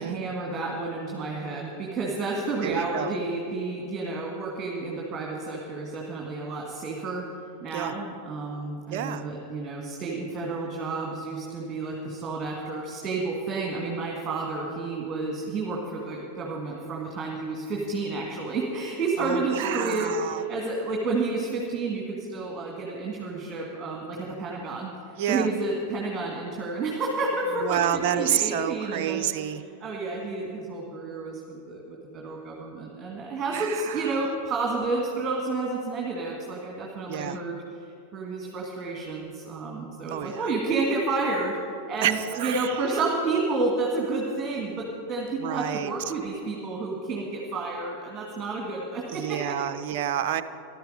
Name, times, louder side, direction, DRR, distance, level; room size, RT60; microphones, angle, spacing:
voice 1, 0.0-7.3 7.6-29.3 29.8-37.6 38.1-41.6 41.9-49.5, right 3 dB, 25° right, -2 dB, 2.0 m, -30 dB
voice 2, 2.6-3.1 7.7-7.9 8.9-9.3 19.2-20.4 25.2-25.5 27.6-29.6 33.5-34.2 37.1-37.4 40.1-40.5 42.0-43.0 45.4-45.9 49.1-50.4, right 10 dB, 50° right, 8 dB, 0.6 m, -29 dB
15.0 x 12.0 x 5.2 m, 2.5 s
figure-of-eight pair, 90°, 0 cm